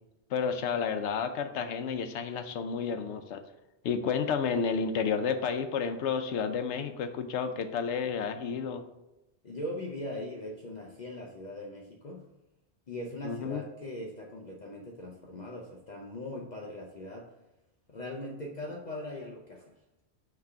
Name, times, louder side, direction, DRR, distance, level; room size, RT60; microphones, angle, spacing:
voice 1, 0.3-3.4 3.8-8.8 13.2-13.6, left 6 dB, 85° left, 8 dB, 0.9 m, -31 dB
voice 2, 9.4-12.3 12.9-17.3 17.9-19.7, left 1 dB, 45° left, -1 dB, 0.7 m, -40 dB
6.0 x 3.2 x 5.5 m, 0.94 s
omnidirectional pair, 1.1 m